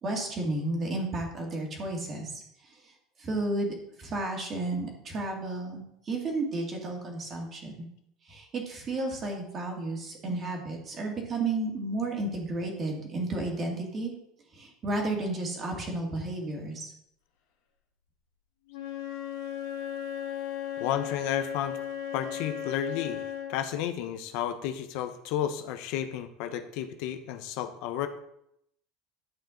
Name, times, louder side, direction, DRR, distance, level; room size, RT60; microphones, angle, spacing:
voice 1, 0.0-2.4 2.7-2.8 3.2-7.9 8.3-14.1 14.5-16.9, right 2 dB, 25° right, 0 dB, 2.3 m, -32 dB
Wind instrument woodwind instrument, 18.7-23.7, left 10 dB, 80° left, 2.1 m, -36 dB
voice 2, 20.8-21.8 22.1-23.2 23.5-28.1, left 10 dB, 55° left, 9 dB, 0.8 m, -32 dB
11.5 x 7.7 x 3.9 m, 0.76 s
cardioid pair, 170°, 0 cm